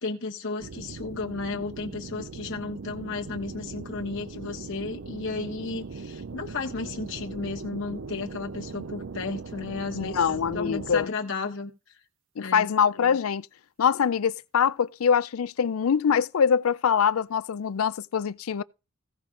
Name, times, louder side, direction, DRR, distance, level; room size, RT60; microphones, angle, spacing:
voice 1, 0.0-10.2 10.5-12.0 12.4-12.7, left 4 dB, 60° left, 1.2 m, -33 dB
sound 1, 0.6-11.1, right 4 dB, 60° right, 0.5 m, -39 dB
voice 2, 9.9-11.1 12.4-13.5 13.8-18.6, left 7 dB, 80° left, 0.4 m, -24 dB
16.0 x 5.7 x 3.8 m
head